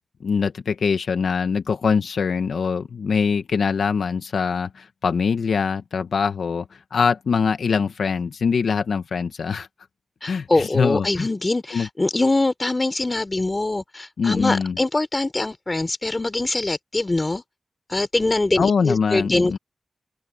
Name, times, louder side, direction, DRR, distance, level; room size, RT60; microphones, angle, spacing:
voice 1, 0.2-9.7 10.3-11.3 11.7-11.9 14.2-14.8 18.6-19.6, left 5 dB, 80° left, 1.2 m, -23 dB
voice 2, 10.2-17.4 17.9-19.6, left 2 dB, 35° left, 4.2 m, -23 dB
open air
cardioid pair, 45°, 0 cm